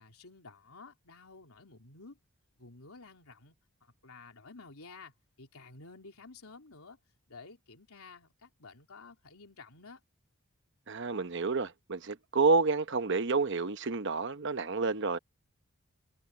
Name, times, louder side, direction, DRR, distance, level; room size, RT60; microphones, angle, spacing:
voice 1, 0.0-2.2 2.6-3.5 3.8-5.1 5.4-7.0 7.3-10.0, left 3 dB, 85° left, 3.5 m, -52 dB
voice 2, 10.9-15.2, right 4 dB, 55° right, 0.9 m, -29 dB
head